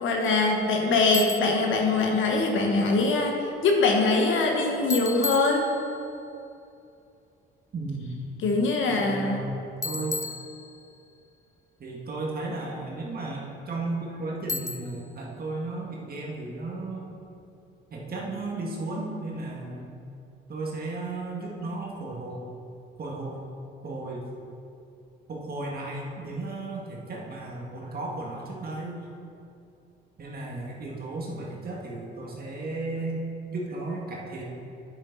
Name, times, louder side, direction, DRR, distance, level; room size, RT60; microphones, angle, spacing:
voice 1, 0.0-3.4 3.6-5.7 8.4-9.4, left 3 dB, 80° left, 1 dB, 1.3 m, -23 dB
Bicycle, 1.1-1.7 4.9-6.1 9.8-11.1 14.5-15.2, left 4 dB, 15° left, 0.4 m, -34 dB
voice 2, 7.7-8.2 8.9-10.2 11.8-17.2 17.9-19.9 20.5-22.5 23.0-23.4 23.8-24.2 25.3-29.1 30.2-34.4, right 2 dB, 50° right, -3 dB, 1.9 m, -34 dB
8.7 x 8.1 x 4.1 m, 2.6 s
cardioid pair, 90°, 20 cm